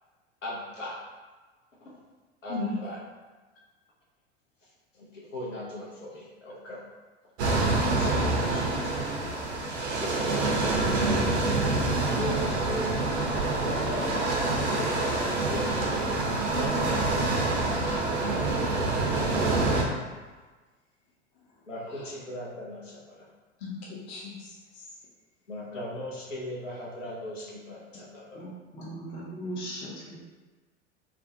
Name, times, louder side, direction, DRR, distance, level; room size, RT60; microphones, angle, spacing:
voice 1, 0.4-1.0 1.8-2.0 2.4-3.0 4.9-6.8 7.9-8.9 10.0-10.4 11.3-11.5 12.0-12.9 13.6-15.0 15.3-16.0 21.7-23.3 25.5-28.4, left 1 dB, 90° left, -5 dB, 0.7 m, -38 dB
sound 1, 7.4-19.8, right 2 dB, 65° right, 0.6 m, -26 dB
voice 2, 16.9-18.2 21.9-22.1 23.6-24.6, left 4 dB, 55° left, -4 dB, 0.8 m, -39 dB
voice 3, 28.3-30.2, right 1 dB, 15° left, -5 dB, 0.4 m, -38 dB
2.5 x 2.0 x 2.5 m, 1.3 s
figure-of-eight pair, 80°, 37 cm